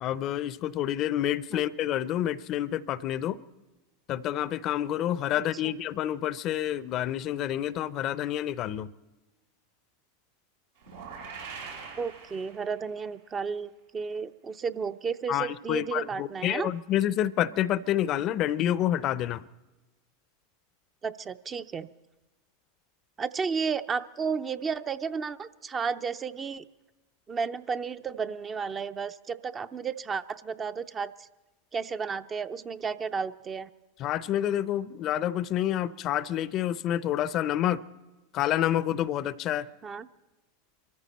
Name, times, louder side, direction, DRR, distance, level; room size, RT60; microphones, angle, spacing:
voice 1, 0.0-3.4 4.1-8.9 15.3-19.4 34.0-37.8 38.3-39.7, left 12 dB, 45° left, 17 dB, 0.6 m, -28 dB
sound 1, 10.8-13.0, right 5 dB, 85° right, 5.4 m, -43 dB
voice 2, 12.0-16.7 21.0-21.9 23.2-26.6 27.3-31.3 31.7-33.7 39.8-40.1, right 5 dB, 25° right, 12 dB, 0.6 m, -33 dB
24.0 x 14.0 x 4.2 m, 1.1 s
hypercardioid pair, 105°, 0 cm